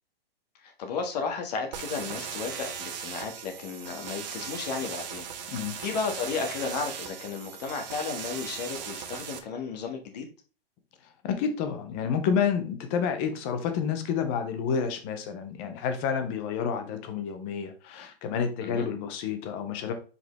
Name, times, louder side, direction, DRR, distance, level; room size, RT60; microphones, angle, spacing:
voice 1, 0.6-5.2 5.8-10.2 18.6-18.9, left 5 dB, 45° left, 4 dB, 1.6 m, -33 dB
sound 1, 1.7-9.4, right 8 dB, 45° right, 1.3 m, -38 dB
voice 2, 11.2-19.9, left 7 dB, 10° left, 8 dB, 0.4 m, -29 dB
6.2 x 5.1 x 3.3 m, 0.36 s
hypercardioid pair, 155°, 30 cm